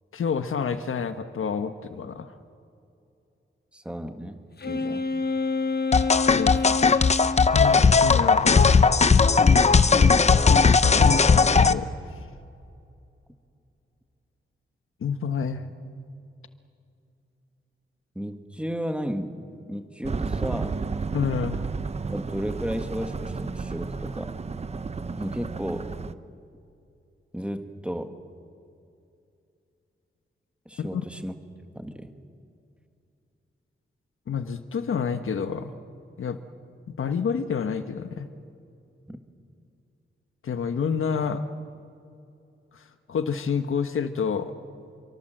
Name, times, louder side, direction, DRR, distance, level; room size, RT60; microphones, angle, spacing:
voice 1, 0.1-2.3 6.3-6.5 7.5-8.7 10.9-11.9 15.0-15.6 21.1-21.6 30.8-31.0 34.3-35.7 36.2-36.4 36.9-38.3 40.4-41.4 42.7-44.5, left 6 dB, 75° left, 9 dB, 1.4 m, -28 dB
voice 2, 3.7-5.1 9.9-10.3 18.2-20.9 22.1-24.4 25.2-25.9 27.3-28.2 30.7-31.3 31.8-32.1 39.1-39.2, equal, 5° right, 6 dB, 1.7 m, -34 dB
Wind instrument woodwind instrument, 4.6-7.5, left 4 dB, 50° left, 1.2 m, -27 dB
sound 1, 5.9-11.7, left 5 dB, 30° left, 0.7 m, -17 dB
sound 2, 20.0-26.1, right 4 dB, 30° right, 0.7 m, -32 dB
28.5 x 23.5 x 7.8 m, 2.6 s
wide cardioid pair, 130°, 21 cm